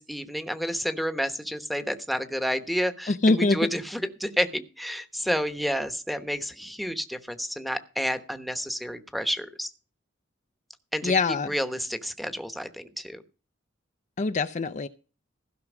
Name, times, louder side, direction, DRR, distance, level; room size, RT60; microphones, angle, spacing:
voice 1, 0.0-9.7 10.9-13.2, equal, ahead, 8 dB, 1.1 m, -30 dB
voice 2, 3.1-3.6 11.0-11.5 14.2-14.9, left 3 dB, 40° left, 10 dB, 0.5 m, -23 dB
15.5 x 6.1 x 6.2 m, 0.35 s
head